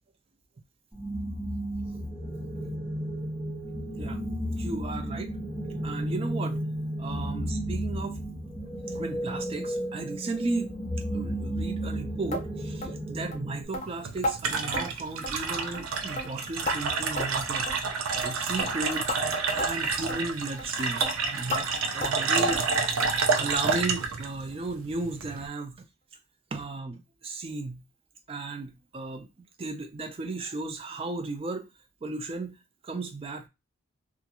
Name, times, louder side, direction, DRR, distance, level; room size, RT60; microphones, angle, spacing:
sound 1, 0.9-13.6, equal, 5° right, 0.9 m, -33 dB
voice 1, 4.5-5.4 5.8-6.6 7.0-8.2 8.9-10.8 11.1-17.7 18.2-19.1 19.5-22.7 23.3-25.8 26.5-27.8 28.3-29.3 29.6-31.7 32.0-32.6 32.8-33.5, right 3 dB, 25° right, 0.3 m, -35 dB
sound 2, 12.3-12.5 12.8-13.0 13.3-13.4 13.7-13.9 14.2-14.4 14.7-14.9 15.2-15.5 15.7-15.9 16.2-16.8 17.2-17.4 17.7-17.8 18.2-18.3 18.6-18.7 19.1-19.2 19.6-19.7 20.1-20.2 20.6-20.7 21.0-21.1 21.5-21.6 22.0-22.2 22.5-22.7 23.0-23.2 23.5-23.6 24.0-24.1 24.5-24.6, left 1 dB, 35° left, 0.5 m, -33 dB
sound 3, 13.8-25.5, right 4 dB, 85° right, 0.5 m, -29 dB
2.4 x 2.3 x 2.9 m
head